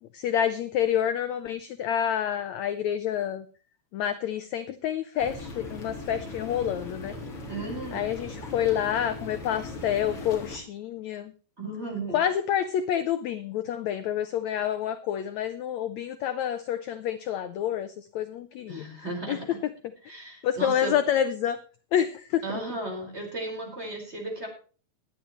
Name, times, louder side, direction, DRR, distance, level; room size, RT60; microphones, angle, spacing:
voice 1, 0.1-3.4 3.9-7.1 7.9-11.3 12.1-18.8 19.3-19.4 20.4-21.6 21.9-22.4, left 10 dB, 90° left, 12 dB, 1.5 m, -28 dB
sound 1, 5.2-10.6, left 2 dB, 40° left, 4.1 m, -39 dB
voice 2, 7.5-8.1 11.6-12.2 18.7-19.6 20.0-20.9 22.4-24.5, right 2 dB, 15° right, 2 dB, 4.7 m, -35 dB
20.0 x 10.5 x 3.0 m, 0.38 s
omnidirectional pair, 4.2 m